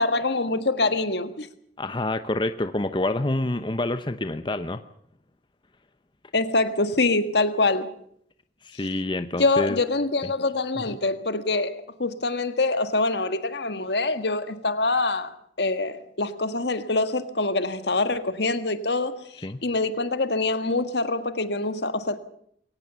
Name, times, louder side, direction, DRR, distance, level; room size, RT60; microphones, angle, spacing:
voice 1, 0.0-1.5 6.3-7.9 9.4-19.2 19.6-22.2, left 2 dB, 70° left, 1.7 m, -25 dB
voice 2, 1.8-4.8 8.6-9.8 10.2-10.3 10.9-11.0 19.4-19.6, left 2 dB, 25° left, 0.8 m, -27 dB
22.5 x 18.0 x 7.0 m
head